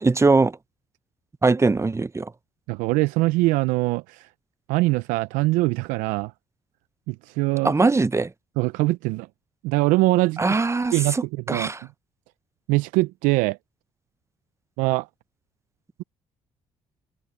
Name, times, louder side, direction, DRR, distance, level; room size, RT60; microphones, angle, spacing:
voice 1, 0.0-0.6 1.4-2.3 7.6-8.3 10.4-11.2 11.5-11.8, right 3 dB, 20° right, 0.7 m, -21 dB
voice 2, 2.7-4.3 4.7-6.3 7.1-7.7 8.6-9.3 9.6-10.4 10.9-11.2 11.5-11.7 12.7-13.6 14.8-15.1, right 21 dB, 80° right, 0.6 m, -22 dB
hypercardioid pair, 50°, 13 cm